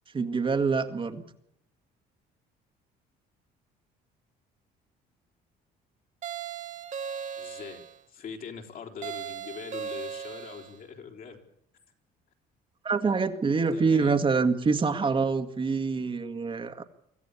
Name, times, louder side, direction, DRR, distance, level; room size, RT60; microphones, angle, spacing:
voice 1, 0.1-1.2 12.8-16.8, right 4 dB, 30° right, 7 dB, 1.9 m, -26 dB
sound 1, 6.2-8.0 9.0-10.8, right 7 dB, 45° right, 1.8 m, -37 dB
voice 2, 7.4-7.8 8.1-11.4 13.7-14.2, left 6 dB, 55° left, 2 dB, 4.4 m, -42 dB
25.0 x 14.0 x 8.6 m, 0.76 s
cardioid pair, 110°, 17 cm